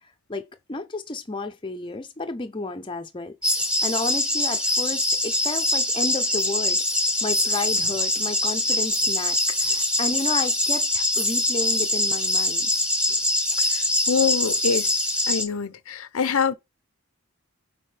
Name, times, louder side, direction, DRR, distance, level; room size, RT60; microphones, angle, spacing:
voice 1, 0.7-6.8 7.2-12.7, left 3 dB, 25° left, 0.6 m, -32 dB
sound 1, 3.4-15.4, left 1 dB, 5° right, 1.1 m, -23 dB
voice 2, 13.6-14.9 15.3-16.5, left 6 dB, 80° left, 0.6 m, -25 dB
8.6 x 4.1 x 3.3 m
head